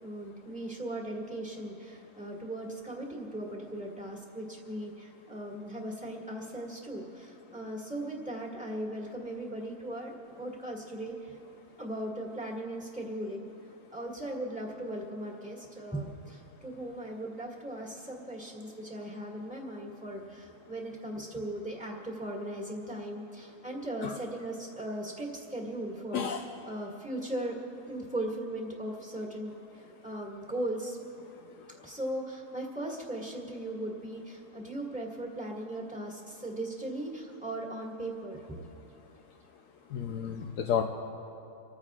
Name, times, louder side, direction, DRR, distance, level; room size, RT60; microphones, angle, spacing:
voice 1, 0.0-10.1 10.4-11.4 11.8-13.5 13.9-26.3 26.7-27.6 27.9-31.0 31.8-38.7 40.2-40.4, right 1 dB, 5° right, -3 dB, 1.9 m, -38 dB
voice 2, 26.1-26.4 31.2-31.9 39.9-40.8, left 8 dB, 65° left, 1 dB, 1.0 m, -32 dB
30.0 x 14.5 x 2.5 m, 3.0 s
omnidirectional pair, 1.7 m